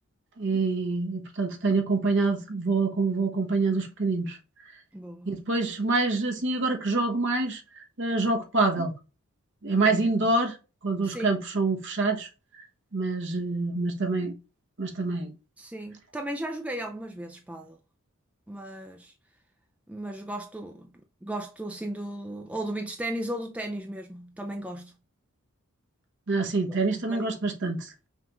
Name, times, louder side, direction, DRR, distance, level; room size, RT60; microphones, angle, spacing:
voice 1, 0.4-4.4 5.3-8.9 9.6-10.6 10.8-12.3 12.9-14.3 14.8-15.3 26.3-27.9, right 3 dB, 55° right, 1.0 m, -26 dB
voice 2, 4.9-5.4 9.8-10.0 11.0-11.3 15.6-17.8 18.5-19.1 19.9-20.9 21.2-24.9 26.7-27.3, right 1 dB, 5° right, 0.3 m, -36 dB
5.6 x 2.4 x 3.0 m
head